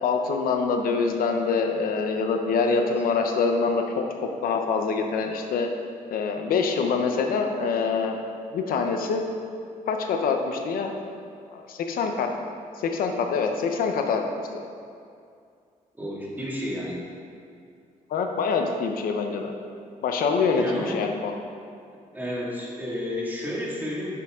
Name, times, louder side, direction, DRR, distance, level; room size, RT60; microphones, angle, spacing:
voice 1, 0.0-5.7 6.1-8.2 8.5-9.3 9.9-10.9 11.5-12.3 12.8-14.2 14.5-14.6 18.1-19.5 20.0-21.3, left 5 dB, 85° left, 4 dB, 0.8 m, -25 dB
voice 2, 16.0-17.1 20.5-21.0 22.1-24.2, left 1 dB, 10° right, -4 dB, 2.1 m, -31 dB
10.0 x 6.9 x 3.7 m, 2.3 s
cardioid pair, 110°, 15 cm